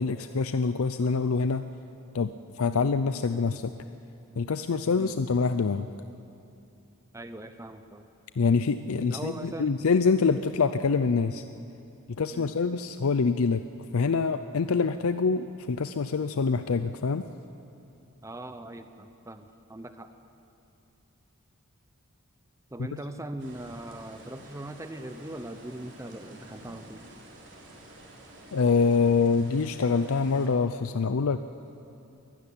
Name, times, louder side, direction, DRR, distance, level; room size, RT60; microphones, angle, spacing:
voice 1, 0.0-1.6 2.1-3.7 4.4-5.9 8.4-11.4 12.2-13.6 13.9-17.3 22.8-22.9 28.5-31.4, left 4 dB, 75° left, 10 dB, 0.5 m, -25 dB
voice 2, 7.1-8.1 9.0-9.8 12.3-12.5 18.2-20.1 22.7-27.0, right 1 dB, 15° right, 8 dB, 0.7 m, -40 dB
sound 1, 23.4-30.5, right 1 dB, 55° right, 3.8 m, -50 dB
22.0 x 12.5 x 10.0 m, 2.7 s
head